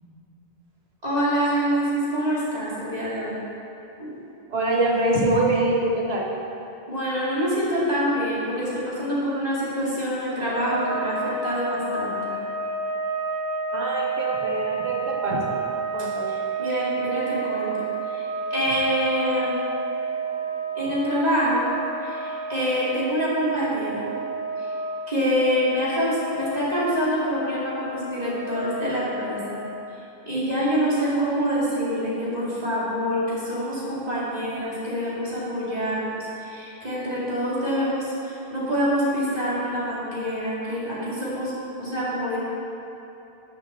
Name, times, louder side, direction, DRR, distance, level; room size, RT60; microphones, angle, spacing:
voice 1, 1.0-3.4 4.0-4.1 6.9-12.3 16.3-19.5 20.8-21.6 22.0-24.1 24.6-24.7 25.1-29.6 30.2-42.4, equal, 40° right, -9 dB, 2.4 m, -26 dB
voice 2, 4.5-6.3 13.7-15.6 15.9-16.3, right 1 dB, 80° right, -3 dB, 1.5 m, -24 dB
sound 1, 10.4-30.1, right 3 dB, 50° left, 1.2 m, -30 dB
7.0 x 5.9 x 6.6 m, 2.9 s
omnidirectional pair, 1.0 m